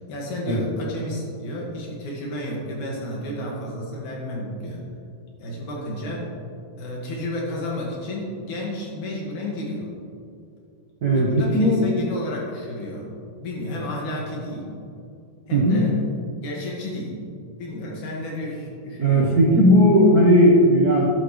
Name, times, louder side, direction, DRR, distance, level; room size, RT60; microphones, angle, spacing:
voice 1, 0.1-4.8 5.4-6.3 6.8-9.9 11.1-13.1 13.4-14.8 15.5-16.0 16.4-17.2 17.6-19.5, left 1 dB, 70° left, -3 dB, 3.3 m, -31 dB
voice 2, 11.0-11.9 15.5-15.8 19.0-21.1, equal, 60° right, -4 dB, 0.9 m, -16 dB
12.5 x 11.0 x 3.2 m, 2.5 s
omnidirectional pair, 3.7 m